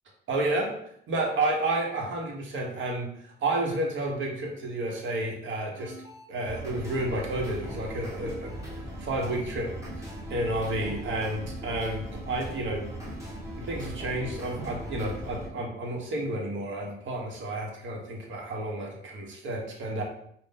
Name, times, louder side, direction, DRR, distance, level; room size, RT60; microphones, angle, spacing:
voice 1, 0.3-0.7 1.1-5.9 6.3-8.6 9.0-9.7 10.0-12.9 13.6-20.0, right 2 dB, 75° right, 1 dB, 1.2 m, -31 dB
sound 1, 5.7-15.5, equal, 15° right, 1.4 m, -39 dB
5.3 x 2.5 x 3.7 m, 0.66 s
cardioid pair, 90°, 20 cm